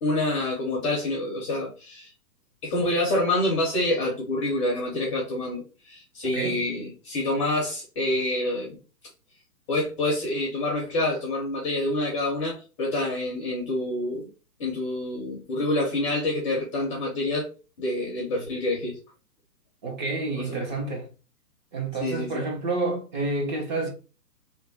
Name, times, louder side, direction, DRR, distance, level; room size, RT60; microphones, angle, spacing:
voice 1, 0.0-2.1 2.6-8.7 9.7-14.3 14.6-17.5 17.8-19.0 20.5-20.6 22.0-22.4, left 1 dB, 20° left, 0.6 m, -27 dB
voice 2, 6.3-6.7 19.8-21.1 21.7-23.9, right 3 dB, 30° right, 0.9 m, -29 dB
2.9 x 2.2 x 4.0 m
hypercardioid pair, 140°, 49 cm